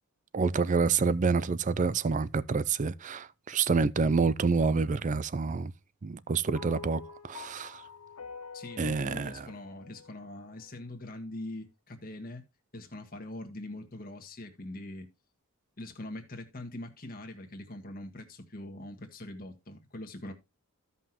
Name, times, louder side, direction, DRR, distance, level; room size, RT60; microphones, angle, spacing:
voice 1, 0.3-5.7 6.0-7.8 8.8-9.5, right 4 dB, 35° right, 0.4 m, -28 dB
sound 1, 6.6-11.0, left 5 dB, 90° left, 1.1 m, -47 dB
voice 2, 8.5-12.4 12.7-15.1 15.8-20.3, left 1 dB, 40° left, 1.6 m, -42 dB
15.0 x 5.6 x 3.0 m
head